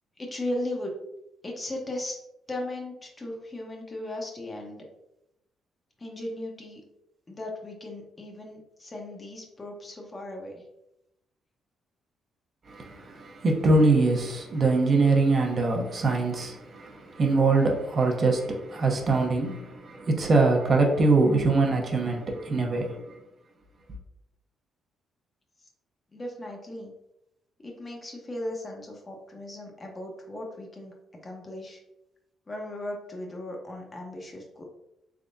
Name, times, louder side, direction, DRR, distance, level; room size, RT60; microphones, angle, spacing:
voice 1, 0.2-0.9 1.4-2.2 2.5-4.8 6.0-6.8 7.3-10.6 26.1-26.9 27.6-30.9 31.2-31.8 32.5-34.6, left 1 dB, 30° left, 0.9 m, -37 dB
voice 2, 12.7-23.1, right 3 dB, 45° right, 0.7 m, -23 dB
3.6 x 3.3 x 2.5 m
cardioid pair, 90°, 0 cm